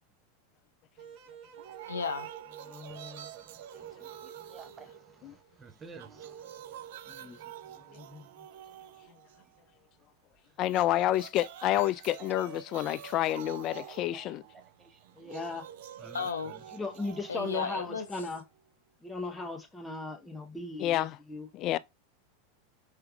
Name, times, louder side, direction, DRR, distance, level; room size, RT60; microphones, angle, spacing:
sound 1, 1.0-5.3, right 8 dB, 50° right, 0.9 m, -53 dB
sound 2, 1.6-5.5 5.8-9.6 10.6-18.6, right 11 dB, 65° right, 0.3 m, -47 dB
voice 1, 1.9-2.3 16.1-16.5 17.3-18.1, left 5 dB, 90° left, 0.7 m, -33 dB
voice 2, 2.6-3.3 7.1-7.4 7.8-8.3 15.2-15.7 16.7-18.4 19.0-21.8, left 3 dB, 5° left, 0.7 m, -38 dB
voice 3, 3.3-6.8 12.3-12.5 13.8-15.0 16.0-16.6, right 4 dB, 25° right, 0.8 m, -53 dB
voice 4, 10.6-14.4 20.8-21.2 21.5-21.8, left 14 dB, 45° left, 0.3 m, -29 dB
4.9 x 3.3 x 2.2 m
hypercardioid pair, 100°, 0 cm